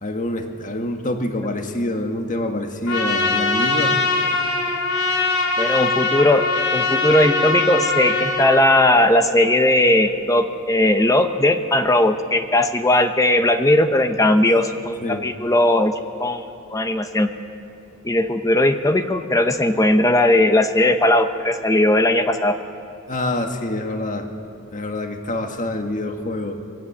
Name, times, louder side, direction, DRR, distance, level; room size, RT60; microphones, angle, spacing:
voice 1, 0.0-4.0 15.0-15.3 23.1-24.3 24.7-26.6, left 1 dB, 40° left, 4 dB, 1.7 m, -26 dB
Trumpet, 2.9-8.6, left 3 dB, 85° left, 3.2 m, -22 dB
voice 2, 5.6-15.9 16.2-16.4 16.7-17.3 18.0-22.6, left 1 dB, 15° left, 7 dB, 0.8 m, -18 dB
22.5 x 16.5 x 8.5 m, 2.8 s
head